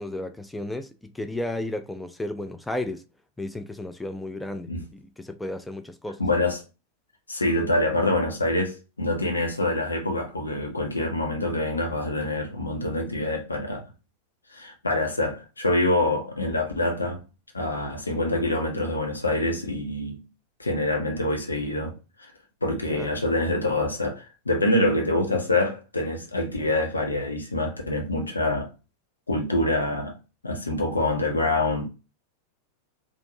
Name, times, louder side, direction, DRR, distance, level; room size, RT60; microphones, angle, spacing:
voice 1, 0.0-3.0 3.4-6.2 22.9-23.1, left 1 dB, 5° left, 0.3 m, -33 dB
voice 2, 6.2-6.6 7.3-13.8 14.5-17.2 17.5-20.2 20.6-22.3 22.6-28.7 29.3-30.2 30.4-31.9, left 2 dB, 80° left, 1.0 m, -26 dB
4.5 x 2.6 x 2.5 m
figure-of-eight pair, 90°, 0 cm